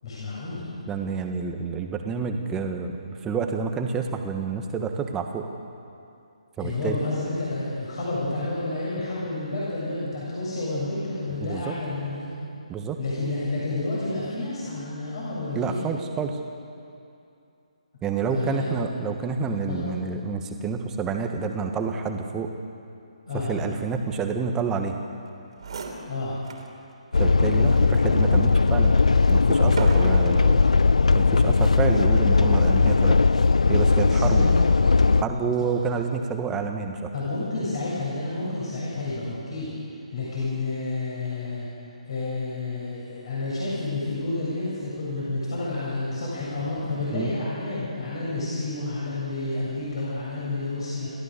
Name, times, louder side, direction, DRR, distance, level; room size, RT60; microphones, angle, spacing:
voice 1, 0.0-0.8 6.6-12.3 13.0-15.8 18.3-18.7 19.3-19.8 23.3-23.5 26.1-26.5 34.0-34.5 35.2-35.5 37.1-39.7 40.1-41.7 42.0-51.1, left 2 dB, 50° left, -7 dB, 7.5 m, -30 dB
voice 2, 0.9-2.9 3.2-5.5 6.6-7.0 11.4-11.6 12.7-13.0 15.5-16.4 18.0-22.5 23.5-25.0 27.2-28.9 29.3-30.6 31.1-33.2 33.7-34.4 35.2-37.1 47.1-47.3, right 5 dB, 15° right, 4 dB, 1.6 m, -28 dB
sound 1, 25.3-25.4 25.6-26.7 27.2-27.3 27.9-30.5 31.3-31.6, right 4 dB, 50° right, 3.1 m, -36 dB
sound 2, 27.1-35.2, left 4 dB, 70° left, 0.5 m, -18 dB
29.0 x 15.0 x 6.9 m, 2.6 s
figure-of-eight pair, 140°, 4 cm